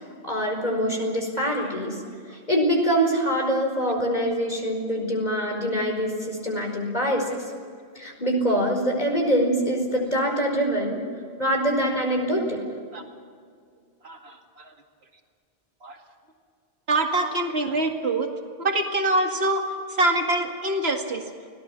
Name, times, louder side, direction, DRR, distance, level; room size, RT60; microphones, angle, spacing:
voice 1, 0.2-2.0 2.3-7.4 7.9-11.0 11.4-12.6, equal, 40° left, 1 dB, 5.0 m, -24 dB
voice 2, 14.0-14.7 15.8-16.0 16.9-18.3 18.6-19.6 19.9-21.2, right 2 dB, 80° right, 2 dB, 2.4 m, -24 dB
29.0 x 18.5 x 6.0 m, 2.1 s
omnidirectional pair, 1.1 m